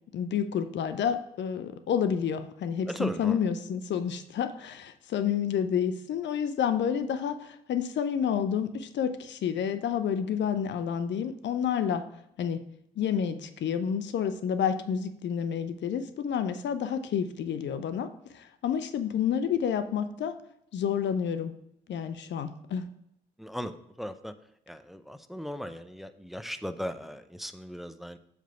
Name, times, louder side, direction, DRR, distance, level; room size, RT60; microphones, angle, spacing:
voice 1, 0.1-12.0 12.4-12.6 13.0-20.3 20.7-21.5 21.9-22.9, left 8 dB, 60° left, 10 dB, 0.7 m, -29 dB
voice 2, 2.9-3.4 23.4-24.3 24.7-28.2, equal, ahead, 10 dB, 0.6 m, -37 dB
7.4 x 3.5 x 5.4 m, 0.74 s
hypercardioid pair, 45°, 21 cm